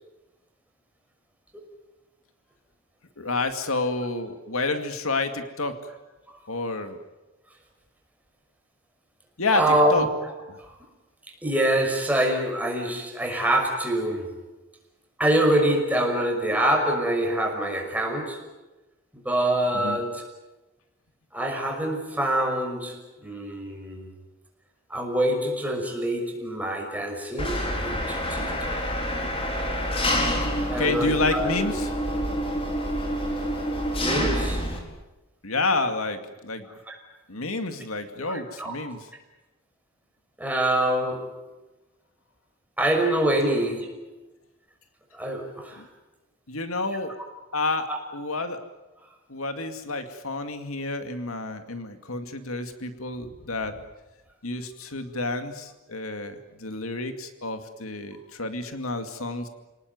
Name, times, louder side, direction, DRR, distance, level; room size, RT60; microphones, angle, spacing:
voice 1, 3.2-5.8 6.5-7.0 9.4-10.1 10.5-10.6 19.7-20.0 30.8-31.9 35.4-36.7 37.3-39.0 43.4-43.5 45.8-45.9 46.5-47.1 47.5-48.6 49.3-53.8 54.4-59.5, left 3 dB, 85° left, 7 dB, 2.3 m, -29 dB
voice 2, 9.5-10.7 11.4-14.4 15.2-18.4 19.1-20.2 21.3-24.1 24.9-29.0 30.7-31.6 34.0-34.7 36.9-37.0 38.3-38.7 40.4-41.3 42.8-44.1 45.1-45.8 47.9-48.0, right 1 dB, 10° right, 2 dB, 5.9 m, -25 dB
Engine, 27.4-34.8, equal, 30° left, 4.5 m, -27 dB
29.0 x 19.0 x 9.5 m, 1.1 s
head